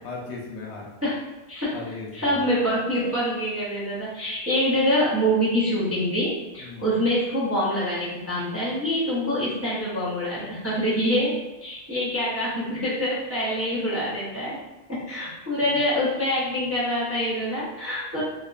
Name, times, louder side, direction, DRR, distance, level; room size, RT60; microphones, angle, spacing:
voice 1, 0.0-0.9 1.7-2.5 6.6-6.9 15.6-15.8 18.1-18.2, left 3 dB, 85° left, -1 dB, 0.9 m, -37 dB
voice 2, 2.1-11.3 11.6-14.6 14.9-18.2, equal, 15° right, -10 dB, 0.5 m, -25 dB
2.7 x 2.1 x 2.3 m, 1.0 s
omnidirectional pair, 1.1 m